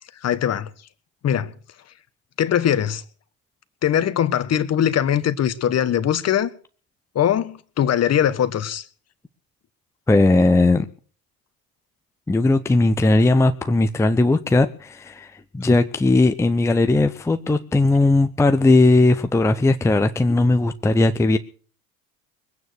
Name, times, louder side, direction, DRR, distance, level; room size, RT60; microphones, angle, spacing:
voice 1, 0.2-0.7 1.2-1.5 2.4-3.0 3.8-6.5 7.1-8.9, left 10 dB, 35° left, 1.4 m, -21 dB
voice 2, 10.1-10.9 12.3-21.4, left 2 dB, 5° left, 0.7 m, -18 dB
21.5 x 9.3 x 6.4 m
hypercardioid pair, 80°, 44 cm